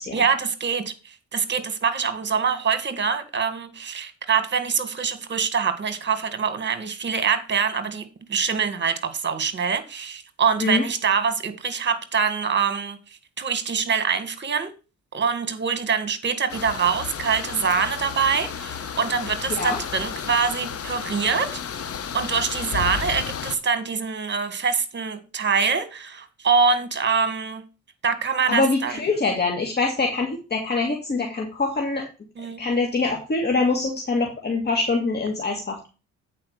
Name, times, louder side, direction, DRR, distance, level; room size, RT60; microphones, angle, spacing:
voice 1, 0.1-13.0 13.4-14.7 15.1-21.8 22.1-27.6 28.0-29.0 32.4-32.6, right 6 dB, 40° right, 1.7 m, -24 dB
sound 1, 16.5-23.6, left 7 dB, 50° left, 1.1 m, -33 dB
voice 2, 28.5-32.1 32.6-35.9, left 3 dB, 35° left, 1.9 m, -24 dB
8.6 x 4.7 x 6.5 m
cardioid pair, 90°, 30 cm